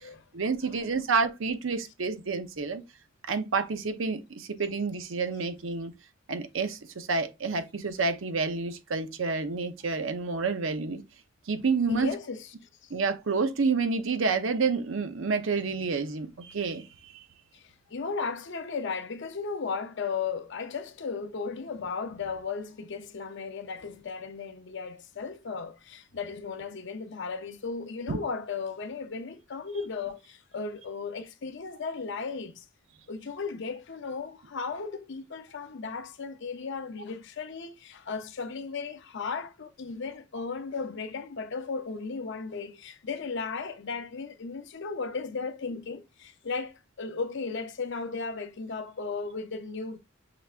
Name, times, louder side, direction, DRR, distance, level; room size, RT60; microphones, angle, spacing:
voice 1, 0.3-2.8 3.3-5.9 6.3-11.0 11.5-12.1 12.9-17.2 28.1-28.2, right 4 dB, 70° right, 0.7 m, -29 dB
voice 2, 11.9-12.5 12.8-12.9 17.5-32.7 33.1-50.0, left 4 dB, 60° left, 0.6 m, -35 dB
5.8 x 3.3 x 2.4 m
head